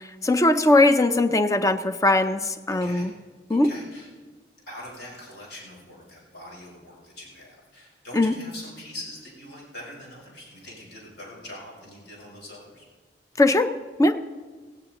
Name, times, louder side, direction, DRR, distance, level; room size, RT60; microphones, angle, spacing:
voice 1, 0.2-3.1 3.5-3.7 8.1-8.3 13.4-13.7 14.0-14.2, left 2 dB, 20° left, 10 dB, 0.5 m, -20 dB
voice 2, 2.7-3.1 3.5-4.1 4.7-12.9, left 1 dB, 75° left, -5 dB, 5.3 m, -43 dB
18.5 x 16.5 x 3.0 m, 1.4 s
head